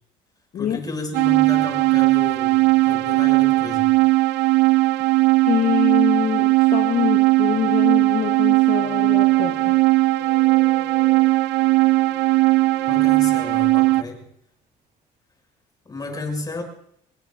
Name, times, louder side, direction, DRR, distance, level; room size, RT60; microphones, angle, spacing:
voice 1, 0.5-4.0 12.8-14.2 15.8-16.6, left 2 dB, 25° left, 2 dB, 6.3 m, -32 dB
sound 1, 1.1-14.0, right 20 dB, 85° right, 0.5 m, -18 dB
voice 2, 5.4-9.7, left 9 dB, 55° left, 6 dB, 1.3 m, -24 dB
sound 2, 7.4-13.6 14.7-14.8, right 1 dB, 40° right, 3.2 m, -46 dB
Wind instrument woodwind instrument, 9.3-13.7, right 10 dB, 65° right, 1.5 m, -37 dB
26.5 x 21.5 x 2.6 m, 0.70 s
cardioid pair, 110°, 17 cm